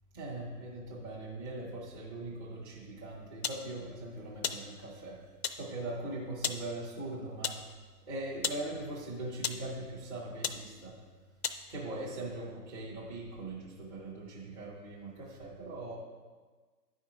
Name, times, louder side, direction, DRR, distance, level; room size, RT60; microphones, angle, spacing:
voice 1, 0.1-5.2 5.5-7.7 8.1-11.0 11.7-16.0, right 2 dB, 15° right, -7 dB, 0.6 m, -41 dB
sound 1, 3.4-3.6 4.4-4.6 5.4-5.6 6.4-6.6 7.4-7.6 8.4-8.6 9.4-9.7 10.4-10.6 11.4-11.6, left 7 dB, 45° left, 0.4 m, -34 dB
9.9 x 4.4 x 4.7 m, 1.4 s
hypercardioid pair, 145°, 48 cm